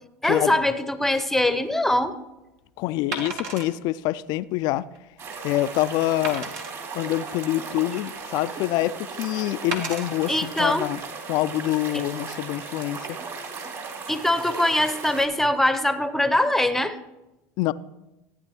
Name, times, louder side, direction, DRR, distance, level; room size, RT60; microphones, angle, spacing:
voice 1, 0.2-2.2 10.3-10.8 11.9-12.0 14.1-16.9, left 1 dB, 5° left, 0.7 m, -22 dB
Wood, 1.5-1.7 3.1-3.7 4.3-4.4 4.9-5.0 6.2-6.7 7.5-8.3 9.7-10.1 10.8-11.0, right 3 dB, 70° right, 1.5 m, -33 dB
voice 2, 2.8-4.9 5.4-6.5 6.9-11.0 11.3-13.1 17.6-17.7, left 15 dB, 55° left, 0.4 m, -26 dB
sound 1, 5.2-15.3, right 4 dB, 45° right, 2.4 m, -37 dB
14.5 x 9.1 x 2.9 m
hypercardioid pair, 80°, 8 cm